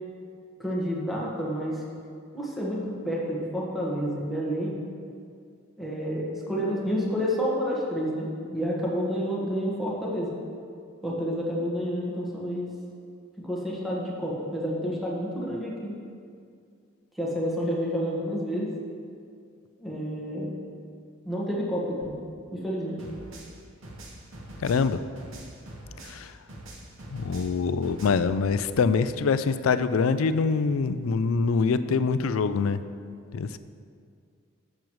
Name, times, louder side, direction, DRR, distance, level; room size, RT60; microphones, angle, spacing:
voice 1, 0.6-1.8 2.3-4.8 5.8-10.3 11.0-12.7 13.4-16.0 17.1-18.7 19.8-20.5 21.2-22.1 22.5-23.0, equal, ahead, -5 dB, 1.5 m, -29 dB
sound 1, 23.0-26.2 26.5-28.3, right 1 dB, 70° right, 1.2 m, -43 dB
voice 2, 24.6-25.0 26.0-26.3 27.1-32.8 33.3-33.6, left 5 dB, 75° left, 12 dB, 0.4 m, -24 dB
12.0 x 7.5 x 3.1 m, 2.3 s
head